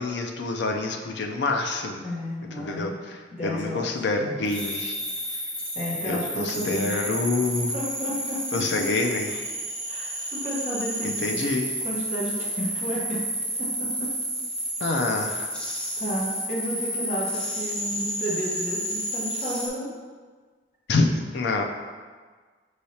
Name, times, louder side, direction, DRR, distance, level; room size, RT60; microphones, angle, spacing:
voice 1, 0.0-2.0 2.6-5.0 6.0-7.7 8.5-9.5 11.0-11.7 14.8-15.5 20.9-21.6, left 3 dB, 75° left, 3 dB, 0.4 m, -27 dB
voice 2, 2.0-2.9 3.3-3.9 4.3-4.4 5.7-7.0 7.7-8.8 9.9-11.4 11.8-13.2 13.6-14.1 16.0-19.9, equal, 40° left, -7 dB, 1.1 m, -32 dB
sound 1, 4.5-19.7, equal, 5° left, 0.5 m, -31 dB
5.5 x 3.2 x 2.8 m, 1.5 s
head